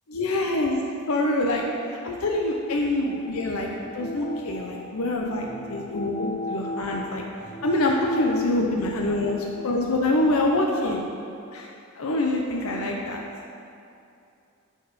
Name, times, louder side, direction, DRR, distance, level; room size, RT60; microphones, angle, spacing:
voice 1, 0.1-0.8 1.1-1.6 2.0-3.7 3.9-7.2 7.6-11.0 11.5-11.7 12.0-13.2, left 2 dB, 80° left, 0 dB, 0.7 m, -25 dB
sound 1, 3.0-9.8, left 1 dB, 20° left, 0.4 m, -36 dB
8.9 x 4.1 x 6.3 m, 2.6 s
head